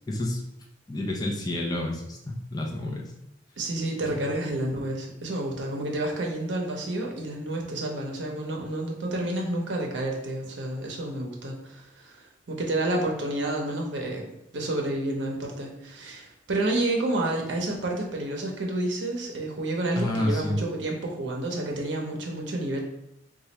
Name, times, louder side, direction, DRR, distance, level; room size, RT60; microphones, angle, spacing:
voice 1, 0.1-0.4 0.9-3.1 4.1-4.3 20.0-20.6, left 1 dB, 20° left, -1 dB, 0.5 m, -29 dB
voice 2, 3.6-14.3 14.5-22.8, right 1 dB, 70° right, 1 dB, 0.7 m, -30 dB
2.9 x 2.4 x 4.2 m, 0.83 s
head